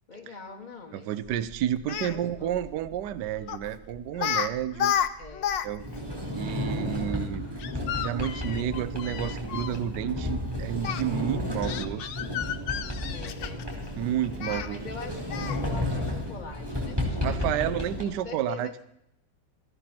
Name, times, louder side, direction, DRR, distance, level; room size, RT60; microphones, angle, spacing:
voice 1, 0.1-1.1 2.0-2.6 5.2-5.5 13.1-13.7 14.5-18.8, left 5 dB, 30° left, 2 dB, 1.0 m, -43 dB
voice 2, 0.9-4.9 5.6-5.8 6.3-7.5 8.0-12.3 14.0-14.9 17.2-18.7, right 11 dB, 70° right, 15 dB, 1.3 m, -31 dB
sound 1, 1.2-18.2, equal, 30° right, 1.9 m, -50 dB
Speech, 1.8-2.1 3.5-3.7 4.2-4.5 4.7-5.7 5.9-6.0 7.6-9.8 10.8-11.0 11.6-13.8 14.4-14.7 15.3-15.7, left 9 dB, 75° left, 1.5 m, -31 dB
Sliding door, 5.8-18.0, left 1 dB, 10° right, 3.9 m, -33 dB
18.0 x 14.0 x 4.3 m, 0.82 s
omnidirectional pair, 2.0 m